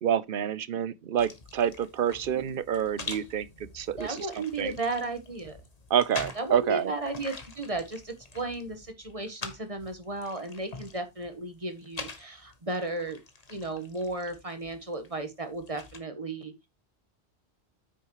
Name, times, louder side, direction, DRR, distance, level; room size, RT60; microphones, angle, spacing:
voice 1, 0.0-4.7 5.9-6.9, right 9 dB, 60° right, 0.8 m, -28 dB
sound 1, 1.2-16.0, left 3 dB, 35° left, 1.3 m, -45 dB
voice 2, 4.0-5.6 6.3-13.2 13.5-16.7, right 2 dB, 35° right, 1.3 m, -34 dB
9.5 x 6.3 x 3.0 m
omnidirectional pair, 1.1 m